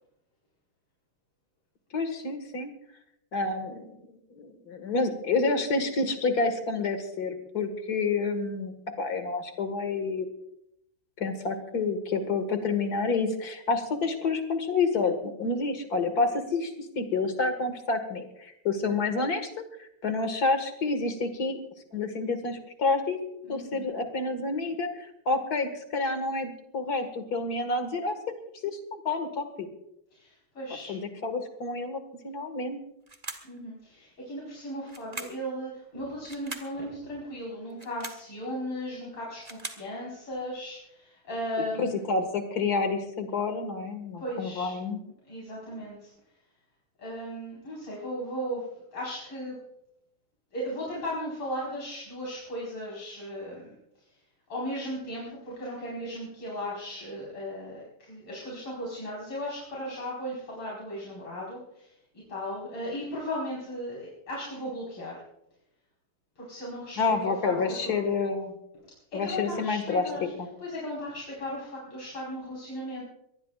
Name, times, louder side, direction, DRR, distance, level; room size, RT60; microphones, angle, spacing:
voice 1, 1.9-2.7 3.3-10.3 11.2-19.5 19.8-21.6 21.9-23.2 23.5-28.2 28.6-29.7 30.9-32.8 41.8-45.0 67.0-68.5 69.1-70.0 70.4-70.5, left 3 dB, 45° left, 7 dB, 2.2 m, -29 dB
voice 2, 23.4-23.9 30.1-31.0 33.4-42.0 44.2-44.8 45.3-46.1 47.0-49.6 50.5-54.1 54.5-65.2 66.4-68.1 68.9-70.3 70.6-73.0, equal, 90° left, -6 dB, 5.7 m, -36 dB
sound 1, 33.1-33.6 34.9-35.5 36.2-36.8 37.7-38.3 39.2-39.9, right 2 dB, 20° right, 1.3 m, -41 dB
24.0 x 19.5 x 2.4 m, 0.80 s
omnidirectional pair, 2.4 m